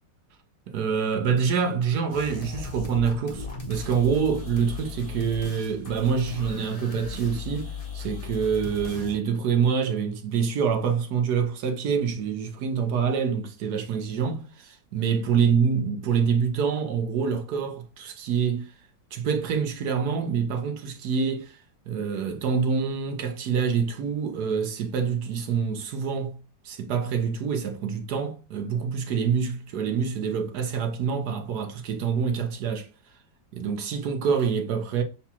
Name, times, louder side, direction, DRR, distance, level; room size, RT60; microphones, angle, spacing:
voice 1, 0.7-18.7 19.1-21.6 21.9-26.4 26.6-32.9 33.5-35.0, right 6 dB, 65° right, 1.3 m, -26 dB
sound 1, 2.1-9.2, left 4 dB, 30° left, 0.8 m, -37 dB
7.1 x 2.4 x 2.8 m
omnidirectional pair, 1.9 m